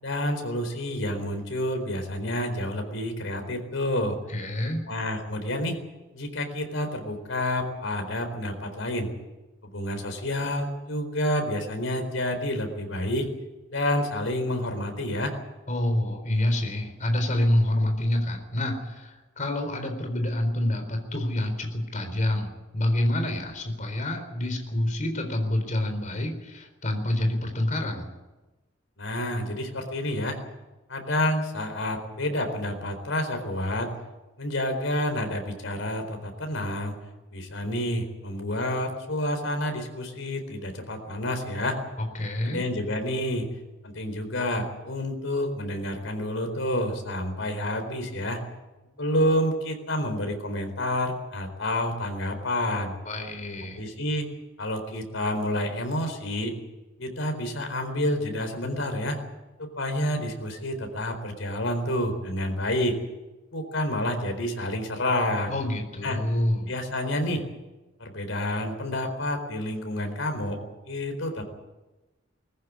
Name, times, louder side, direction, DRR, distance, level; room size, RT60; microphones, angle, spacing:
voice 1, 0.0-4.2 4.9-5.8 6.1-9.1 9.7-13.3 13.7-15.3 29.0-30.4 30.9-33.9 34.4-36.9 37.3-41.8 42.5-43.5 43.8-48.4 49.0-52.9 53.8-54.3 54.6-56.5 57.0-59.2 59.6-63.0 63.5-65.5 66.0-66.2 66.7-67.4 68.0-70.6 70.9-71.4, left 1 dB, 85° left, 6 dB, 4.2 m, -29 dB
voice 2, 4.3-4.8 15.7-28.1 42.1-42.6 53.1-53.8 65.5-66.7, left 1 dB, 40° left, 5 dB, 4.2 m, -27 dB
21.0 x 14.5 x 9.7 m, 1.1 s
head